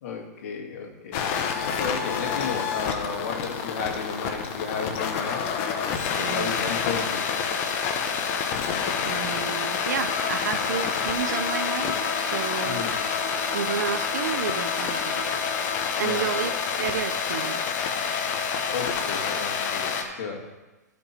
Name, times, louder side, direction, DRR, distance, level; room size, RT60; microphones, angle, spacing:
voice 1, 0.0-5.4 6.1-7.6 12.6-13.0 16.0-16.5 18.7-20.5, left 5 dB, 60° left, 1 dB, 2.0 m, -34 dB
sound 1, 1.1-20.0, left 6 dB, 45° left, 1.1 m, -28 dB
voice 2, 6.2-6.7 9.0-12.8 13.5-15.2 16.0-16.5 16.8-17.9, right 8 dB, 80° right, 12 dB, 0.6 m, -31 dB
Bowed string instrument, 10.0-16.6, left 4 dB, 20° left, 2.5 m, -35 dB
13.0 x 5.3 x 4.4 m, 1.2 s
hypercardioid pair, 140°, 9 cm